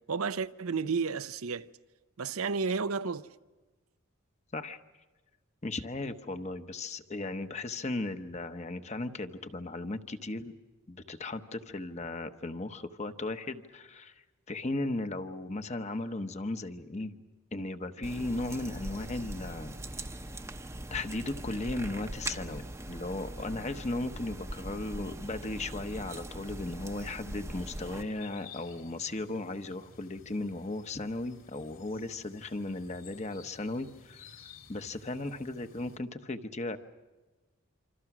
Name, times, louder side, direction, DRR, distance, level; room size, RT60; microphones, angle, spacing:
voice 1, 0.1-1.7 2.2-3.3, right 5 dB, 80° right, 0.7 m, -32 dB
voice 2, 5.6-10.5 10.9-14.1 14.5-17.2 17.5-19.8 20.9-34.2 34.7-36.8, left 2 dB, 30° left, 1.0 m, -36 dB
sound 1, 18.0-28.0, right 1 dB, 15° right, 0.8 m, -41 dB
sound 2, 27.8-36.0, left 5 dB, 60° left, 3.0 m, -54 dB
27.0 x 26.0 x 6.1 m
head